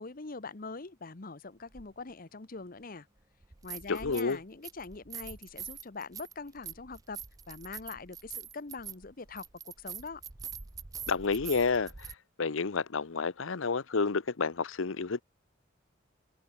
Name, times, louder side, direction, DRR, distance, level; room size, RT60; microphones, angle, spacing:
voice 1, 0.0-3.1 3.6-7.2 7.5-10.2, left 4 dB, 45° left, 1.0 m, -43 dB
sound 1, 1.7-1.9 3.4-4.4 4.6-12.1, right 7 dB, 20° right, 0.5 m, -44 dB
voice 2, 3.9-4.4 11.1-11.9 12.4-15.2, left 4 dB, 85° left, 0.8 m, -30 dB
head